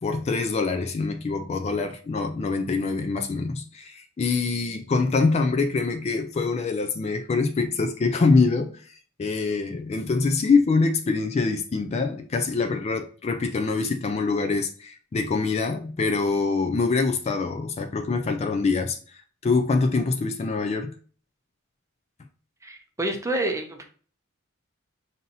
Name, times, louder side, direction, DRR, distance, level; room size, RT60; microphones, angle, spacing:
voice 1, 0.0-20.9, left 4 dB, 30° left, 0.3 m, -25 dB
voice 2, 22.6-23.8, right 1 dB, 15° right, 0.6 m, -28 dB
5.4 x 2.7 x 2.6 m
head